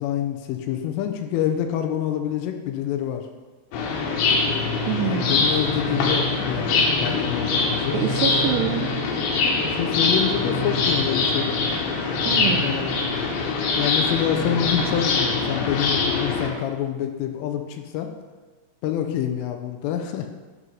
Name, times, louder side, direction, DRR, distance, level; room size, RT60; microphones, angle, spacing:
voice 1, 0.0-3.2 5.0-8.0 9.6-11.6 12.6-13.0 13.8-18.1 18.8-20.3, left 10 dB, 85° left, 5 dB, 3.1 m, -27 dB
sound 1, 3.7-16.5, left 3 dB, 65° left, 2.9 m, -23 dB
voice 2, 4.9-5.5 7.9-9.0 12.2-12.9, right 9 dB, 85° right, 5 dB, 2.8 m, -26 dB
11.0 x 5.5 x 5.5 m, 1.3 s
omnidirectional pair, 6.0 m